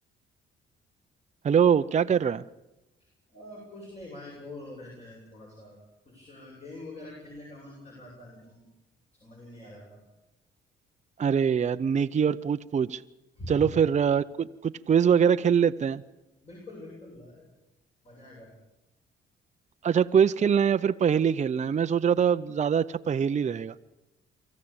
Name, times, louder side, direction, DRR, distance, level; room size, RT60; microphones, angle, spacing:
voice 1, 1.4-2.4 11.2-13.0 13.5-16.0 19.8-23.7, right 7 dB, 35° right, 10 dB, 0.7 m, -23 dB
voice 2, 3.3-8.7 9.2-10.0 13.4-13.6 16.4-17.5 18.0-18.5, left 1 dB, 30° left, -2 dB, 7.7 m, -45 dB
24.5 x 14.5 x 8.8 m, 0.98 s
cardioid pair, 90°, 20 cm